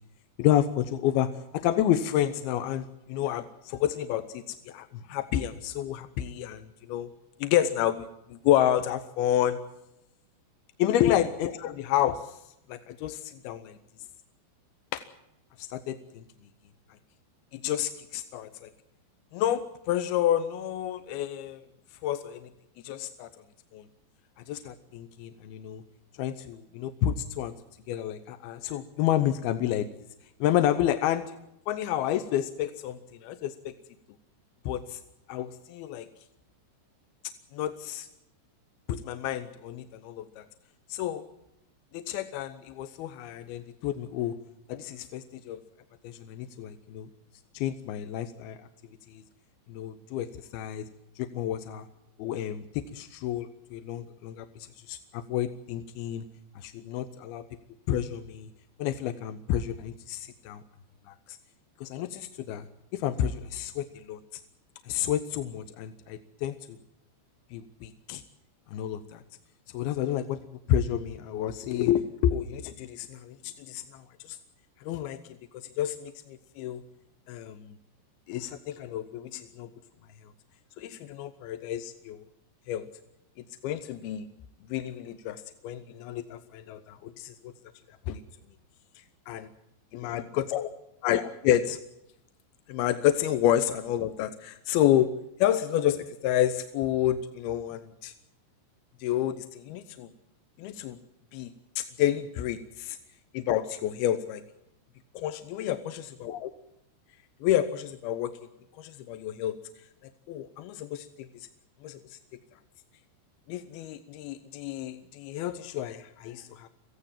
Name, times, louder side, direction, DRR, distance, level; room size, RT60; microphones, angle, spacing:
voice 1, 0.4-7.1 7.4-9.6 10.8-12.3 12.7-13.8 14.9-15.0 15.6-16.2 17.5-18.7 19.3-21.6 22.0-22.5 22.8-23.3 23.7-23.8 24.5-25.8 26.2-27.5 27.9-29.9 30.4-31.4 31.7-33.7 34.7-35.0 35.3-36.1 37.5-38.1 38.9-40.5 40.9-41.2 41.9-44.4 44.7-45.6 46.0-47.1 47.5-48.7 49.1-49.2 49.7-50.9 51.2-51.9 52.2-56.2 56.6-57.5 57.9-58.5 58.8-60.6 61.1-61.4 61.8-62.7 62.9-64.2 64.9-66.8 67.5-68.2 68.7-69.2 69.7-70.4 70.7-74.4 74.8-76.8 77.3-77.8 78.3-79.7 80.8-82.3 82.7-82.9 83.6-84.3 84.7-87.5 88.1-88.2 89.3-89.5 89.9-90.7 91.0-91.8 92.7-95.1 95.4-98.1 99.0-100.1 100.6-101.0 101.3-103.0 103.3-104.4 105.1-106.5 107.4-108.3 108.8-109.6 110.3-111.5 111.8-112.2 113.5-116.7, left 11 dB, 75° left, 10 dB, 2.5 m, -30 dB
25.0 x 16.5 x 7.3 m, 0.83 s
omnidirectional pair, 5.2 m